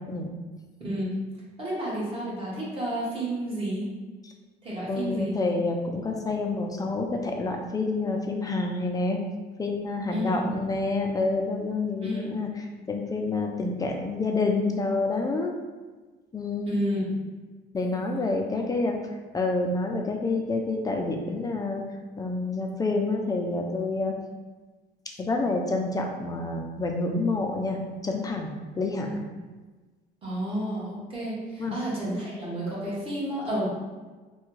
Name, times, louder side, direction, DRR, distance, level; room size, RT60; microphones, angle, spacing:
voice 1, 0.8-1.1 1.6-3.9 4.6-5.4 10.1-10.5 12.0-12.3 16.6-17.2 18.6-18.7 30.2-33.7, right 1 dB, 35° right, -7 dB, 1.5 m, -31 dB
voice 2, 4.9-9.2 9.6-12.5 12.9-15.5 16.3-16.8 17.7-19.0 19.3-21.8 22.2-24.1 25.2-28.5 28.8-29.2 31.6-31.8, left 3 dB, 20° left, 2 dB, 0.4 m, -28 dB
3.4 x 2.3 x 3.1 m, 1.3 s
cardioid pair, 110°, 17 cm